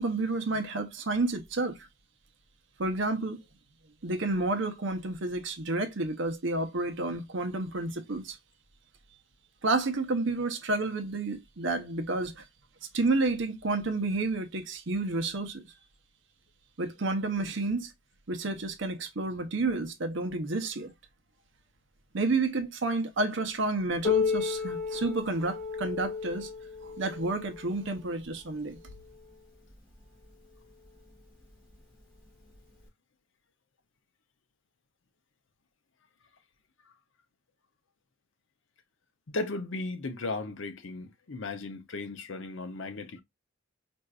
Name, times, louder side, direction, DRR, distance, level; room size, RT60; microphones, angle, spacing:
voice 1, 0.0-1.8 2.8-3.4 4.0-8.4 9.6-12.4 12.9-15.6 16.8-17.9 18.3-20.9 22.1-26.5 26.8-28.8, right 2 dB, 60° right, 0.7 m, -30 dB
Piano, 24.0-29.4 30.2-30.3 30.8-30.9 31.7-31.8 32.8-32.9, left 5 dB, 40° left, 2.2 m, -33 dB
voice 2, 39.3-43.2, left 3 dB, 60° left, 0.6 m, -36 dB
4.4 x 2.6 x 2.3 m
head